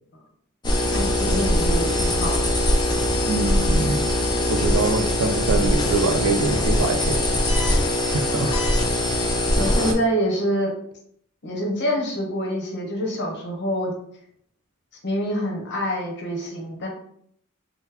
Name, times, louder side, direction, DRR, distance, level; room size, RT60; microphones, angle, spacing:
sound 1, 0.6-9.9, left 1 dB, 20° left, 0.3 m, -21 dB
voice 1, 0.9-2.4 8.4-8.7 9.6-10.7 11.4-13.9 15.0-16.9, equal, 50° left, 0 dB, 0.8 m, -26 dB
voice 2, 3.3-4.1 4.5-7.2 8.1-8.5, right 3 dB, 70° right, 6 dB, 0.4 m, -24 dB
3.7 x 2.0 x 2.9 m, 0.66 s
head